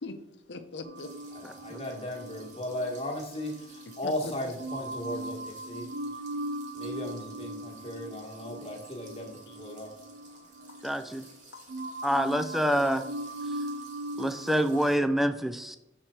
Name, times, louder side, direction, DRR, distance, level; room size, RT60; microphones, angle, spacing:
voice 1, 0.5-1.2 4.0-4.3 9.5-12.1 13.5-13.9, left 3 dB, 75° left, 0.7 m, -45 dB
sound 1, 0.8-4.1 4.6-11.4 11.7-14.9, right 1 dB, 90° right, 0.5 m, -39 dB
sound 2, 1.0-15.0, right 3 dB, 45° right, 1.7 m, -55 dB
voice 2, 1.3-5.9 6.7-9.9, left 1 dB, 35° left, 1.4 m, -36 dB
voice 3, 10.8-11.3 12.0-13.0 13.5-13.6 14.2-15.8, equal, ahead, 0.4 m, -26 dB
6.5 x 4.4 x 4.3 m
head